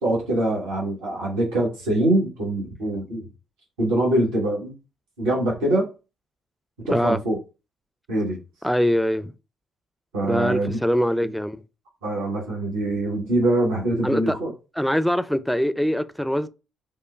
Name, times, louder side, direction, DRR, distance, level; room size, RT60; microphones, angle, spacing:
voice 1, 0.0-3.3 3.8-4.7 5.2-5.9 6.9-7.4 8.1-8.4 10.1-10.8 11.2-11.3 12.0-14.5, right 1 dB, 80° right, 1.3 m, -23 dB
voice 2, 8.6-9.3 10.3-11.6 14.0-14.3 14.8-16.5, equal, ahead, 0.4 m, -23 dB
5.0 x 2.1 x 2.4 m
hypercardioid pair, 45°, 0 cm